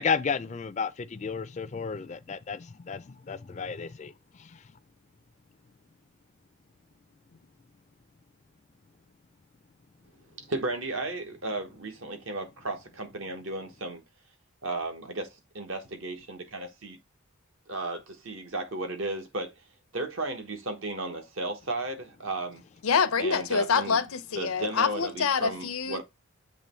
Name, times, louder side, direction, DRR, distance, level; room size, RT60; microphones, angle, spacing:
voice 1, 0.0-4.1 4.4-4.6, left 5 dB, 35° left, 0.4 m, -32 dB
voice 2, 10.4-14.0 14.6-17.0 17.7-19.5 19.9-22.6 23.2-24.0 24.3-26.0, right 2 dB, 70° right, 1.2 m, -34 dB
voice 3, 22.8-26.0, left 6 dB, 90° left, 0.7 m, -26 dB
7.4 x 3.0 x 4.3 m
head